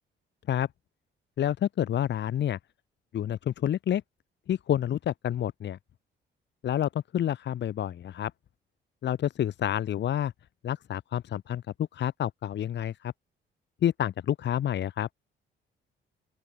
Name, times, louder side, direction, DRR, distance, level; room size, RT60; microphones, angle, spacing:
voice 1, 1.4-2.6 3.1-4.0 4.5-5.8 6.6-8.3 9.0-10.3 10.6-11.6 11.9-13.1 13.8-15.1, left 10 dB, 65° left, 1.4 m, -28 dB
open air
cardioid pair, 90°, 20 cm